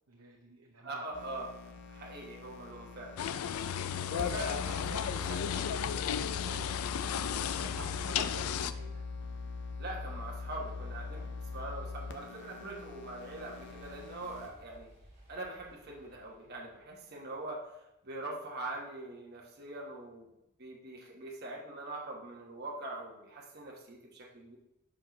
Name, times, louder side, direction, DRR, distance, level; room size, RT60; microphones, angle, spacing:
voice 1, 0.1-1.0 3.8-4.3 6.4-9.1, right 3 dB, 80° right, 0 dB, 0.8 m, -51 dB
voice 2, 0.8-1.6 1.9-3.2 4.1-5.7 9.8-14.9 15.3-20.3 20.6-24.6, right 2 dB, 50° right, -1 dB, 1.2 m, -43 dB
sound 1, 1.1-14.5, left 3 dB, 55° left, 0.7 m, -42 dB
sound 2, 3.2-8.7, left 8 dB, 90° left, 0.4 m, -34 dB
sound 3, 11.2-17.7, right 1 dB, 30° right, 1.7 m, -62 dB
4.9 x 4.4 x 5.9 m, 0.88 s
head